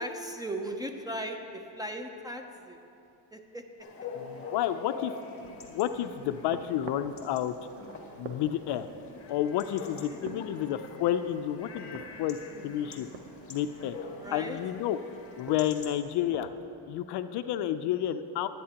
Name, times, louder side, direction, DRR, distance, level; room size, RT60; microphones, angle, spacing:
voice 1, 0.0-2.8 3.3-3.6 10.4-10.5 14.2-14.6, right 1 dB, 10° right, 4 dB, 0.6 m, -37 dB
Chatter / Bark / Livestock farm animals working animals, 3.8-16.0, left 4 dB, 25° left, 1.9 m, -45 dB
voice 2, 4.1-5.1 5.7-7.6 8.2-8.9 9.3-13.1 13.5-14.0 14.3-15.0 15.4-16.5 16.9-18.5, left 11 dB, 55° left, 10 dB, 0.5 m, -30 dB
sound 1, 5.4-16.7, right 6 dB, 60° right, 1.0 m, -49 dB
21.5 x 9.6 x 2.9 m, 2.8 s
cardioid pair, 120°, 50 cm